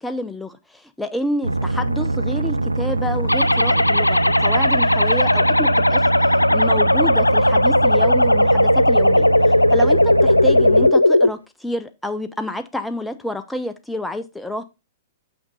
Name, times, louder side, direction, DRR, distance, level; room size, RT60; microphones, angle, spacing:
voice 1, 0.0-14.6, left 1 dB, 5° left, 0.5 m, -29 dB
sound 1, 1.4-10.9, right 2 dB, 85° right, 0.5 m, -23 dB
sound 2, 3.3-11.3, left 1 dB, 85° left, 0.3 m, -16 dB
6.4 x 5.9 x 3.9 m
figure-of-eight pair, 105°, 0 cm